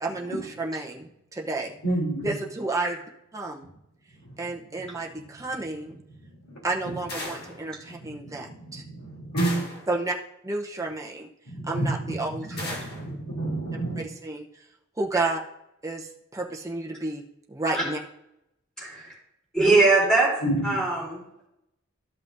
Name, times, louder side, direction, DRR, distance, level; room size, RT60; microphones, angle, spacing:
voice 1, 0.0-1.7 2.2-3.0 3.3-3.7 4.4-6.0 6.6-8.8 9.9-10.1 10.4-11.3 11.7-12.7 14.2-14.4 15.0-15.4 15.8-17.2 17.5-18.0, right 2 dB, 15° right, 0 dB, 0.8 m, -31 dB
voice 2, 1.8-2.3 4.2-4.3 6.3-6.9 7.9-9.6 11.5-14.0 20.4-20.8, right 1 dB, 85° left, -3 dB, 3.3 m, -30 dB
sound 1, 7.1-7.6 9.4-9.9 12.6-13.1, left 2 dB, 50° left, 1.7 m, -36 dB
voice 3, 19.5-20.3 20.6-21.5, right 3 dB, 5° left, -5 dB, 3.4 m, -21 dB
13.0 x 5.7 x 2.7 m, 0.82 s
head